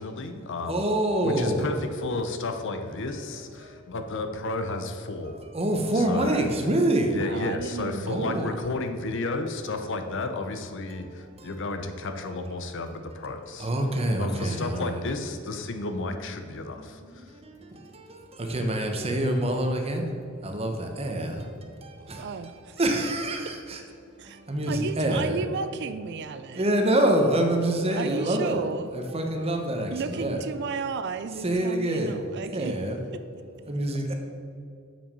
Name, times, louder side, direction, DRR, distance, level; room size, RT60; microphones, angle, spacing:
voice 1, 0.0-1.0 1.2-5.4 6.0-6.5 7.1-13.7 14.2-17.3, left 2 dB, 60° left, 0.7 m, -32 dB
voice 2, 0.7-1.7 5.5-7.1 8.1-8.5 13.6-15.0 18.5-20.0 20.4-20.7 21.0-21.3 22.8-23.8 24.5-25.4 26.6-28.6 28.9-30.4 31.4-32.2 32.5-33.0 33.7-34.1, right 1 dB, 30° right, 0.9 m, -25 dB
voice 3, 7.2-8.6 22.0-23.1 24.2-24.4 24.7-26.7 27.9-28.9 29.9-32.7, right 5 dB, 55° right, 0.4 m, -34 dB
7.2 x 5.9 x 5.4 m
head